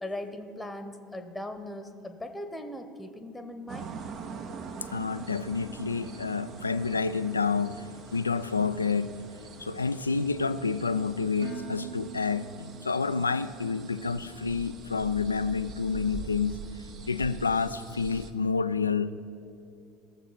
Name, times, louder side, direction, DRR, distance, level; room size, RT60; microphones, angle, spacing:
voice 1, 0.0-3.9, left 1 dB, 5° left, 8 dB, 1.0 m, -39 dB
sound 1, 3.7-18.3, right 5 dB, 45° right, 0.8 m, -44 dB
voice 2, 4.9-7.8 8.1-9.1 9.6-16.6 17.1-19.1, left 5 dB, 85° left, 13 dB, 0.3 m, -29 dB
Dishes pots and pans, 11.4-13.5, right 7 dB, 75° right, 1.7 m, -43 dB
18.5 x 7.4 x 4.1 m, 2.5 s
figure-of-eight pair, 70°, 0 cm